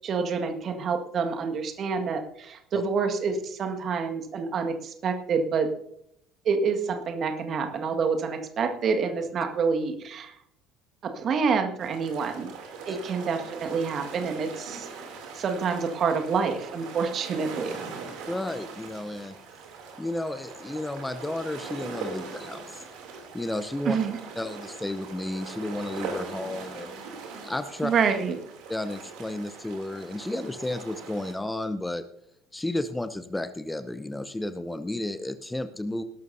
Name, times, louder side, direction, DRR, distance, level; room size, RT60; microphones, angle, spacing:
voice 1, 0.0-5.7 6.5-10.4 11.0-12.5 12.9-14.9 15.3-17.8 23.9-24.2 27.8-28.4, right 5 dB, 45° right, 5 dB, 1.7 m, -27 dB
sound 1, 11.8-31.3, right 4 dB, 60° right, 2.9 m, -41 dB
voice 2, 18.3-19.3 20.0-22.8 23.3-24.0 24.4-26.9 27.4-27.9 28.7-32.0 32.5-36.0, left 1 dB, 10° left, 11 dB, 0.8 m, -32 dB
19.5 x 12.0 x 2.7 m, 0.75 s
figure-of-eight pair, 60°, 0 cm